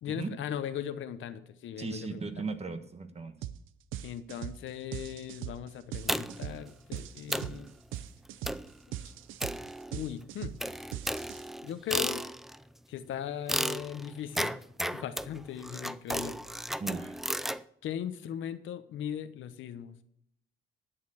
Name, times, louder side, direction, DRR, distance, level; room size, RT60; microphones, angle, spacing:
voice 1, 0.0-2.4 4.0-7.7 9.0-9.1 9.9-10.5 11.6-12.3 12.9-14.5 14.9-16.4 17.8-20.0, left 9 dB, 75° left, 11 dB, 1.0 m, -38 dB
voice 2, 1.8-3.3 16.8-17.1, right 4 dB, 30° right, 9 dB, 1.4 m, -36 dB
sound 1, 3.4-3.6 3.9-11.7, right 12 dB, 90° right, 0.6 m, -40 dB
sound 2, 6.1-6.5 7.0-7.1 7.3-7.6 8.4-8.8 9.4-10.1 10.6-12.6 13.5-17.6, equal, ahead, 0.4 m, -34 dB
11.5 x 6.8 x 6.3 m, 0.71 s
cardioid pair, 90°, 20 cm